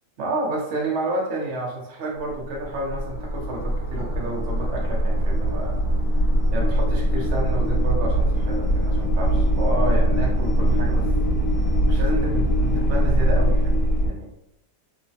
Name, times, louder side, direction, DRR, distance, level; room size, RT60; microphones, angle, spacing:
voice 1, 0.2-5.8 6.5-11.1 11.9-14.3, right 2 dB, 65° right, -1 dB, 0.7 m, -30 dB
sound 1, 2.3-14.1, right 1 dB, 55° left, 1.3 m, -22 dB
3.1 x 2.1 x 2.6 m, 0.80 s
omnidirectional pair, 1.9 m